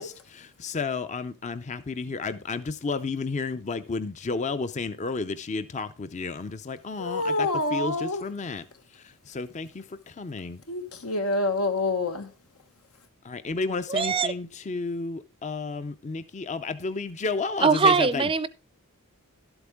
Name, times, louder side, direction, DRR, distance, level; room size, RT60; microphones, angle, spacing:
voice 1, 0.0-8.6 8.9-10.6 13.2-18.3, left 4 dB, 35° left, 0.5 m, -32 dB
voice 2, 7.0-8.2 10.7-12.3, left 2 dB, 90° left, 1.5 m, -27 dB
voice 3, 13.9-14.3 17.6-18.5, right 5 dB, 25° right, 0.5 m, -21 dB
12.0 x 8.1 x 3.5 m
head